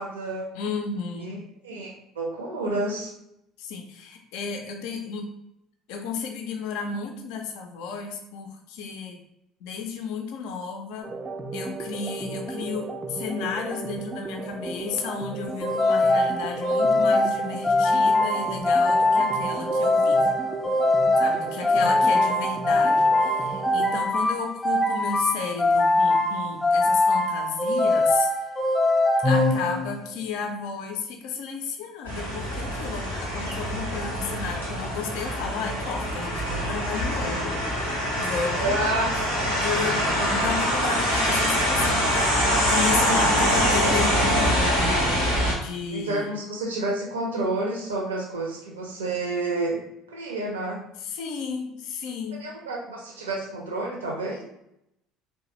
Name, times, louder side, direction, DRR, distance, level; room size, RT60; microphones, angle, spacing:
voice 1, 0.0-0.5 1.2-1.4 1.6-3.1 21.5-22.0 38.5-39.1 43.1-43.5 45.9-49.8 50.1-50.8 52.4-54.4, right 2 dB, 75° right, 0 dB, 0.6 m, -30 dB
voice 2, 0.5-1.4 3.6-5.3 5.9-9.2 9.6-11.2 11.5-20.3 21.2-28.3 29.2-38.8 39.5-44.9 45.6-46.3 51.0-52.5, left 5 dB, 60° left, 4 dB, 0.4 m, -33 dB
sound 1, 11.0-24.0, right 3 dB, 20° right, 0.3 m, -35 dB
sound 2, 15.6-30.2, left 2 dB, 15° left, 0.7 m, -22 dB
sound 3, 32.1-45.5, equal, 90° right, 1.0 m, -24 dB
3.1 x 2.2 x 2.9 m, 0.81 s
figure-of-eight pair, 60°, 0 cm